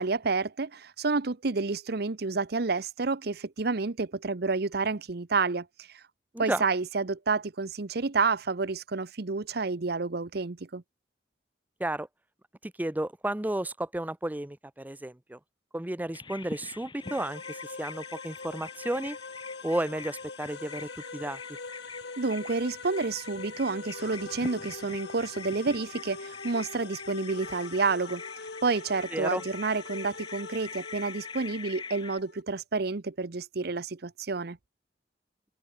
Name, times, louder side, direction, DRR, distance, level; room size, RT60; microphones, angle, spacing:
voice 1, 0.0-5.9 6.4-10.8 22.2-28.2 28.6-34.6, right 4 dB, 60° right, 0.9 m, -29 dB
voice 2, 6.3-6.6 11.8-12.1 12.6-15.4 15.7-19.2 19.6-21.4 29.1-29.4, right 1 dB, 10° right, 0.5 m, -32 dB
Bird vocalization bird call bird song, 16.1-32.2, left 4 dB, 25° left, 0.7 m, -45 dB
sound 1, 17.0-32.4, left 4 dB, 65° left, 1.3 m, -43 dB
head